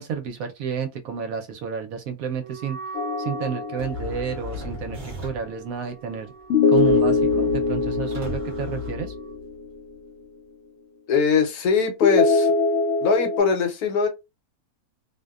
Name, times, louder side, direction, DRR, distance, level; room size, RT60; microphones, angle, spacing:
voice 1, 0.0-2.8 3.2-6.3 6.7-9.1, right 7 dB, 70° right, 0.9 m, -31 dB
Wind instrument woodwind instrument, 2.3-9.4, right 5 dB, 30° left, 0.8 m, -43 dB
sound 1, 2.9-4.5 6.5-9.7 12.0-13.4, left 4 dB, 60° left, 0.8 m, -22 dB
sound 2, 3.8-5.6 6.7-9.6, left 3 dB, 20° right, 1.0 m, -36 dB
voice 2, 11.1-12.5 13.0-14.1, left 5 dB, 75° left, 1.2 m, -21 dB
2.6 x 2.1 x 2.3 m
omnidirectional pair, 1.7 m